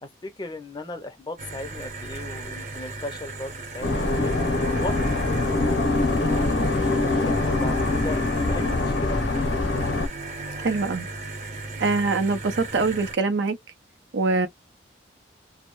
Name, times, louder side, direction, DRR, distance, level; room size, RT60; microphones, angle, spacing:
voice 1, 0.0-4.3 4.8-5.7 6.0-9.6, left 2 dB, 25° left, 0.5 m, -37 dB
sound 1, 1.4-13.1, right 2 dB, 40° right, 0.7 m, -36 dB
sound 2, 3.8-10.1, left 2 dB, 70° left, 0.6 m, -23 dB
voice 2, 10.6-11.1 11.8-13.6 14.1-14.5, right 3 dB, 75° right, 0.5 m, -23 dB
2.2 x 2.0 x 2.9 m
head